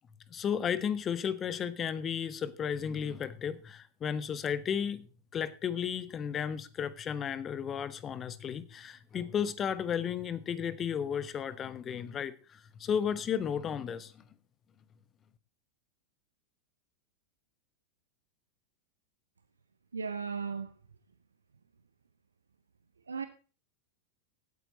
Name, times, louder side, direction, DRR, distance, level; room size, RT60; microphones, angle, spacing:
voice 1, 0.3-14.1, left 8 dB, 25° left, 1.0 m, -34 dB
voice 2, 19.9-20.7 23.1-23.3, right 5 dB, 75° right, 0.8 m, -35 dB
16.5 x 9.2 x 4.0 m
figure-of-eight pair, 90°, 0 cm